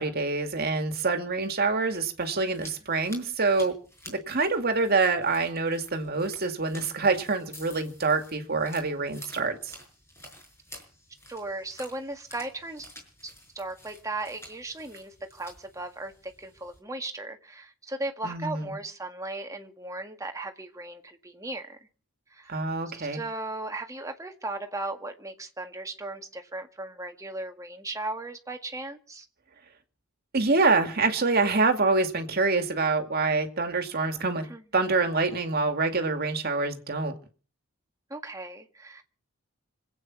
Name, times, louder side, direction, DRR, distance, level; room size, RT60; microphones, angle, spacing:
voice 1, 0.0-3.7 4.1-9.7 18.2-18.7 22.5-23.2 30.3-34.5 34.7-37.1, right 3 dB, 50° right, 2.3 m, -26 dB
sound 1, 1.6-16.8, left 1 dB, 15° left, 5.9 m, -51 dB
voice 2, 11.3-12.9 13.2-21.8 22.3-22.5 23.0-29.3 34.5-34.6 38.1-39.0, right 2 dB, 15° right, 1.8 m, -37 dB
26.0 x 8.9 x 6.0 m
head